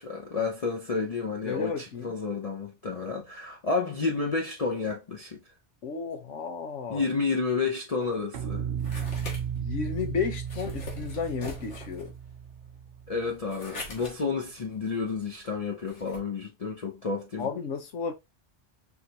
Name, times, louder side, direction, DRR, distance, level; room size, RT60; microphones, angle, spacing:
voice 1, 0.0-5.4 6.9-8.7 13.1-17.5, left 4 dB, 40° left, 0.6 m, -30 dB
voice 2, 1.4-2.1 5.8-7.1 9.6-12.1 17.4-18.1, left 6 dB, 85° left, 1.3 m, -33 dB
sound 1, 8.0-16.2, left 2 dB, 70° left, 1.7 m, -44 dB
sound 2, 8.3-13.6, right 8 dB, 60° right, 0.8 m, -35 dB
4.6 x 3.3 x 2.8 m
omnidirectional pair, 1.2 m